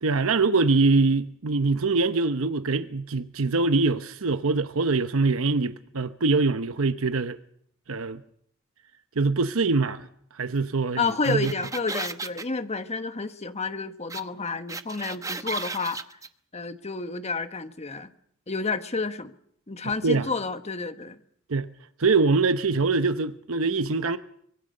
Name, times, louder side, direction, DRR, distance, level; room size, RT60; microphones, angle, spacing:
voice 1, 0.0-7.4 7.9-8.2 9.2-10.1 10.3-11.5 20.0-20.3 21.5-21.7 22.0-24.2, right 3 dB, 85° right, 0.9 m, -23 dB
voice 2, 11.0-16.0 16.5-18.1 18.5-19.3 19.7-21.2, left 4 dB, 30° left, 1.3 m, -30 dB
sound 1, 11.0-12.4 14.1-14.2 14.5-16.3, right 3 dB, 15° right, 1.0 m, -34 dB
25.0 x 22.5 x 6.6 m
head